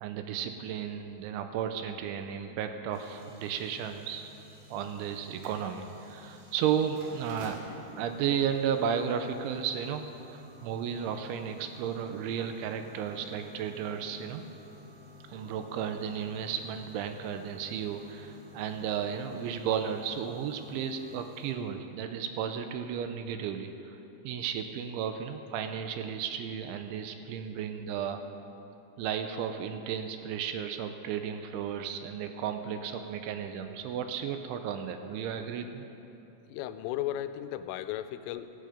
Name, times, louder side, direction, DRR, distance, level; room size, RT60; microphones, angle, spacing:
voice 1, 0.0-4.3 4.7-7.6 8.0-14.4 15.3-24.0 24.2-28.2 29.0-35.9, right 8 dB, 80° right, 7 dB, 3.0 m, -34 dB
sound 1, 2.9-21.5, left 1 dB, 60° right, 3.8 m, -52 dB
voice 2, 36.5-38.5, left 12 dB, 85° left, 11 dB, 3.2 m, -35 dB
17.0 x 14.0 x 5.1 m, 3.0 s
omnidirectional pair, 5.7 m